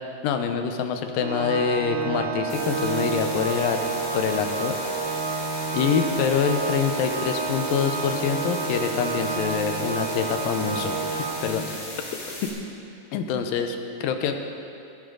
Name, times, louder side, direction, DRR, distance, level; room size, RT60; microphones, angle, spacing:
voice 1, 0.2-3.8 4.1-4.8 5.7-11.9 13.1-14.5, left 6 dB, 90° left, 6 dB, 2.6 m, -26 dB
Organ, 1.2-11.9, right 4 dB, 65° right, 2.9 m, -30 dB
sound 1, 2.5-12.5, left 1 dB, 35° left, 3.9 m, -37 dB
16.5 x 15.0 x 3.9 m, 2.6 s
omnidirectional pair, 3.9 m